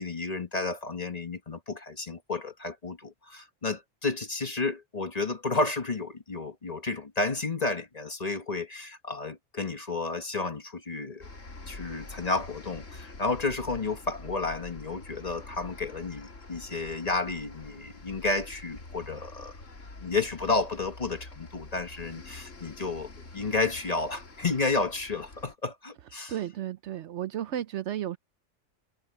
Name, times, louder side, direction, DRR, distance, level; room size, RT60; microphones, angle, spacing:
voice 1, 0.0-11.2 11.7-19.5 20.0-26.3, left 3 dB, 35° left, 1.2 m, -31 dB
sound 1, 11.2-25.5, left 3 dB, 75° left, 3.1 m, -46 dB
voice 2, 26.3-28.2, right 11 dB, 70° right, 0.9 m, -33 dB
omnidirectional pair, 1.3 m